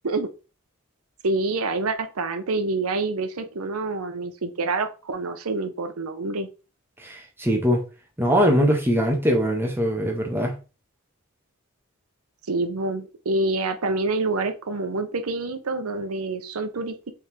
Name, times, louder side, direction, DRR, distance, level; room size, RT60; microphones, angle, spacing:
voice 1, 1.2-6.5 12.5-17.0, right 3 dB, 85° right, 0.8 m, -27 dB
voice 2, 7.0-7.8 8.2-10.5, equal, 10° right, 1.1 m, -21 dB
3.6 x 3.3 x 4.5 m
head